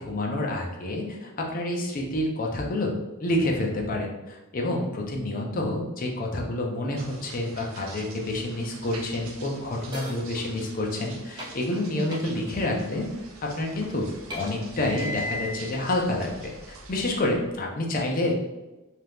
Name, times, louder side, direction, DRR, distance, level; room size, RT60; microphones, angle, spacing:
voice 1, 0.0-2.9 3.2-13.1 13.4-18.3, left 1 dB, 40° left, 0 dB, 0.5 m, -28 dB
sound 1, 7.0-17.0, right 3 dB, 65° right, 0.5 m, -46 dB
sound 2, 9.9-10.2 11.4-11.6 12.1-12.3 13.5-13.6 14.3-15.2, equal, 20° right, 0.6 m, -39 dB
sound 3, 12.8-13.8 14.1-17.6, left 2 dB, 90° left, 1.1 m, -38 dB
2.8 x 2.3 x 3.4 m, 1.1 s
head